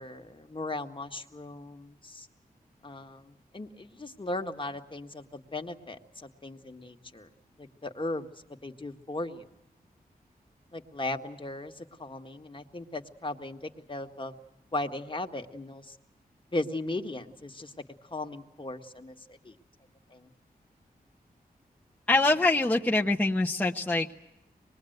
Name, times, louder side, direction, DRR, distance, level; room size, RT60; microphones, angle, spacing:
voice 1, 0.0-2.3 2.8-3.2 3.5-5.2 5.5-7.3 7.6-8.3 8.6-9.4 10.7-11.7 12.0-13.6 13.9-14.3 14.7-15.8 16.5-17.7 18.1-19.1 20.1-20.2, left 2 dB, 30° left, 5 dB, 1.7 m, -37 dB
voice 2, 22.1-24.2, left 2 dB, 10° left, -2 dB, 1.1 m, -24 dB
24.5 x 21.5 x 8.0 m, 0.93 s
cardioid pair, 65°, 16 cm